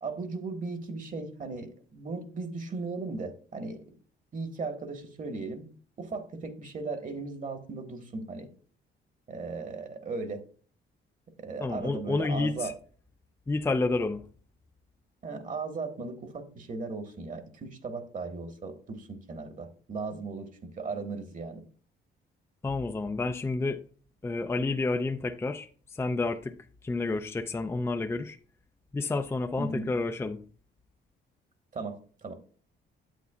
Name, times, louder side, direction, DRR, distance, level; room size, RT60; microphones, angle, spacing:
voice 1, 0.0-3.8 4.3-5.7 6.0-8.5 9.3-10.4 11.4-12.7 15.2-21.6 29.6-29.9 31.7-32.3, right 3 dB, 40° right, 1.3 m, -37 dB
voice 2, 11.6-12.7 13.5-14.2 22.6-23.8 24.2-25.7 25.9-26.5 26.8-28.4 28.9-30.4, left 3 dB, 15° left, 0.4 m, -29 dB
9.3 x 8.0 x 2.3 m
cardioid pair, 90°, 20 cm